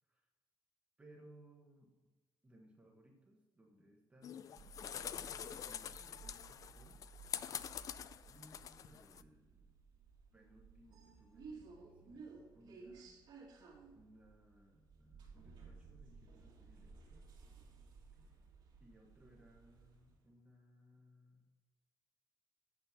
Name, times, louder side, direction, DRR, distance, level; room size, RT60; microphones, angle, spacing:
voice 1, 1.0-2.1 2.4-4.5 5.3-7.0 8.3-9.7 10.3-12.2 12.5-13.6 13.9-17.0 18.1-18.3 18.8-21.4, right 1 dB, 15° right, -1 dB, 1.3 m, -64 dB
sound 1, 4.2-9.2, left 9 dB, 50° left, 0.3 m, -46 dB
sound 2, 4.6-20.2, right 4 dB, 70° right, 2.2 m, -57 dB
8.1 x 6.7 x 5.9 m, 1.2 s
cardioid pair, 150°, 8 cm